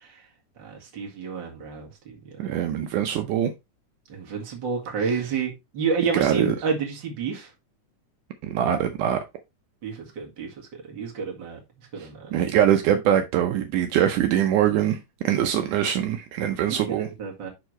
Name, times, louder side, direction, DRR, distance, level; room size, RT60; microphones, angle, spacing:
voice 1, 0.6-2.1 2.4-2.5 4.1-7.5 9.8-10.5 10.9-11.6 11.9-12.3 16.7-17.5, right 5 dB, 40° right, 2.3 m, -30 dB
voice 2, 2.4-3.5 5.0-5.3 6.1-6.6 8.4-9.2 12.0-15.0 15.2-17.1, right 10 dB, 75° right, 2.2 m, -23 dB
11.0 x 3.7 x 3.2 m
omnidirectional pair, 3.7 m